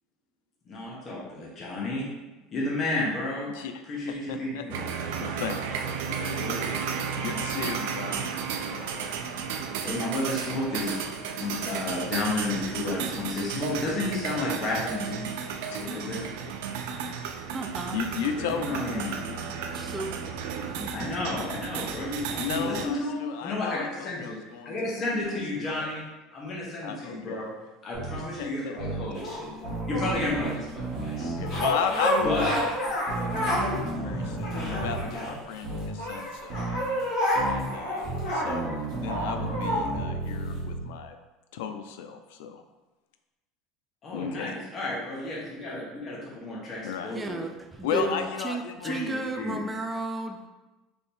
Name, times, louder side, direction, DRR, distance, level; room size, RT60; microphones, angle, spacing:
voice 1, 0.7-2.1 2.5-3.5 3.9-4.8 6.4-6.9 9.8-11.0 11.4-15.2 15.8-16.2 18.5-19.2 20.9-24.4 24.6-26.0 26.3-27.5 27.8-29.5 29.9-31.6 32.2-32.5 33.2-33.8 34.4-34.6 44.0-47.4 48.0-48.2 48.8-49.6, left 2 dB, 25° left, -5 dB, 0.9 m, -32 dB
voice 2, 4.1-6.6 7.2-8.3 8.7-9.1 15.7-16.5 17.9-20.2 20.9-21.1 22.4-26.0 26.8-27.5 28.4-29.0 31.1-32.7 33.1-36.8 37.4-41.2 41.5-42.6 44.1-44.6 46.8-47.2 47.8-49.4, left 7 dB, 85° left, 7 dB, 0.4 m, -35 dB
sound 1, 4.7-22.9, right 6 dB, 80° right, 0.4 m, -33 dB
voice 3, 17.5-18.0 19.7-20.1 20.6-21.1 47.1-48.1 48.4-50.5, right 2 dB, 10° right, 4 dB, 0.3 m, -33 dB
sound 2, 27.9-28.2 28.8-29.0 29.6-31.6 32.2-32.5 33.1-35.0 35.6-35.9 36.5-36.8 37.4-37.6 38.0-40.8, right 2 dB, 35° right, 1.1 m, -33 dB
sound 3, 29.1-30.5 31.4-33.8 34.1-35.6 36.0-39.9 40.5-40.6, equal, 50° left, 1.2 m, -29 dB
3.4 x 2.8 x 4.3 m, 1.1 s
cardioid pair, 165°, 0 cm